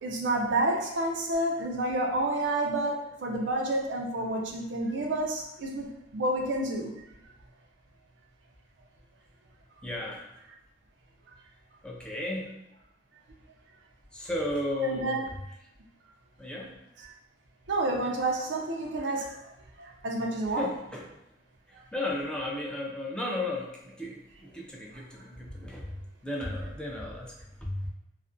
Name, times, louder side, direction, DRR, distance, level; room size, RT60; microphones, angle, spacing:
voice 1, 0.0-5.9 6.1-6.9 14.8-15.2 17.7-19.5 19.8-20.7, right 1 dB, 85° right, 1 dB, 0.4 m, -29 dB
voice 2, 9.8-10.3 11.8-12.5 14.1-15.3 16.4-16.7 20.5-21.1 21.7-27.4 27.6-27.9, left 1 dB, 5° left, -2 dB, 0.3 m, -34 dB
2.4 x 2.1 x 2.4 m, 0.82 s
head